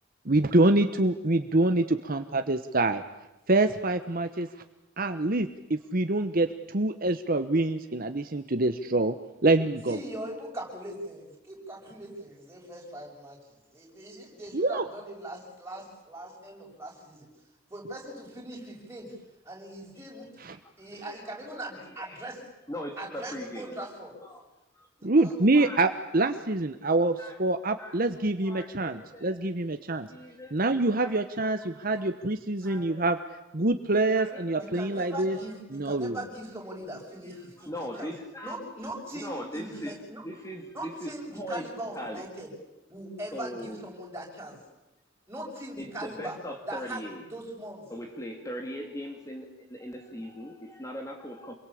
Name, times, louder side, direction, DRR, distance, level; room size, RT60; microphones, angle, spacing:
voice 1, 0.3-3.0 3.5-4.5 5.0-9.1 9.4-10.0 14.5-14.8 20.4-20.5 25.0-27.1 27.4-30.1 30.5-33.2 33.5-35.4 35.7-36.2, right 2 dB, 50° right, 8 dB, 1.1 m, -25 dB
voice 2, 9.8-13.4 13.7-17.3 17.7-19.1 19.5-20.3 20.8-22.4 23.0-24.2 25.2-25.3 32.7-32.8 34.3-37.7 38.0-38.1 38.4-40.2 40.7-42.5 42.9-44.6 45.3-46.4 46.7-47.9, right 1 dB, 15° right, -1 dB, 7.3 m, -40 dB
voice 3, 20.5-21.3 21.7-22.3 22.7-23.8 24.2-24.5 24.7-24.9 25.2-25.9 26.2-26.3 27.2-27.4 27.8-29.4 29.9-30.5 31.0-32.2 32.6-33.1 34.1-35.5 37.2-38.6 39.1-41.7 41.9-42.3 43.3-43.8 45.8-47.2 47.9-51.5, equal, 15° left, 3 dB, 2.6 m, -41 dB
28.0 x 22.5 x 8.6 m, 0.98 s
head